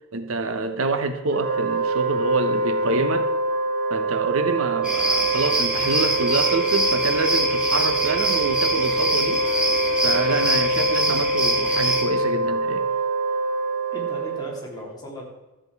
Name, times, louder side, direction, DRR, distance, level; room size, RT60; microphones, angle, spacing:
voice 1, 0.1-3.3 3.9-9.4 10.0-12.9, right 3 dB, 80° right, 8 dB, 1.0 m, -26 dB
Wind instrument woodwind instrument, 1.3-14.7, right 2 dB, 45° right, 1.9 m, -25 dB
sound 1, 4.8-12.0, right 1 dB, 5° right, 1.8 m, -25 dB
voice 2, 13.9-15.3, equal, 20° left, -3 dB, 2.7 m, -37 dB
13.5 x 7.6 x 4.7 m, 1.1 s
head